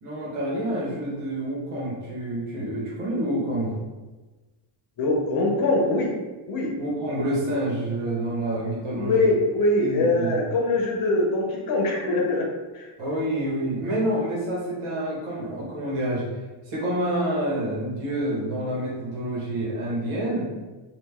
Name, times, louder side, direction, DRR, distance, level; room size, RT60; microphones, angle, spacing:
voice 1, 0.0-3.8 6.8-9.3 9.8-10.4 13.0-16.2 16.6-20.5, right 1 dB, 90° right, -4 dB, 1.4 m, -28 dB
voice 2, 5.0-6.1 6.5-6.7 8.9-12.5 12.7-12.9, left 2 dB, 45° left, -1 dB, 0.8 m, -23 dB
3.0 x 2.5 x 3.5 m, 1.2 s
cardioid pair, 155°, 48 cm